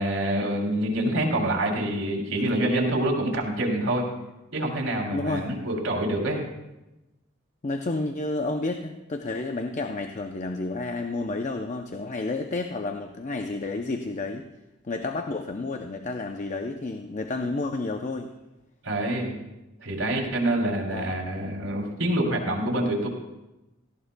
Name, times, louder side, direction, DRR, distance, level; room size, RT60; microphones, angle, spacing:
voice 1, 0.0-4.1 4.5-6.4 18.8-19.3 19.8-23.1, right 1 dB, 80° right, 0 dB, 3.2 m, -26 dB
voice 2, 5.1-5.5 7.6-14.5 14.8-18.3 20.9-21.2, left 2 dB, 35° left, 5 dB, 0.6 m, -30 dB
18.0 x 15.0 x 2.3 m, 0.98 s
head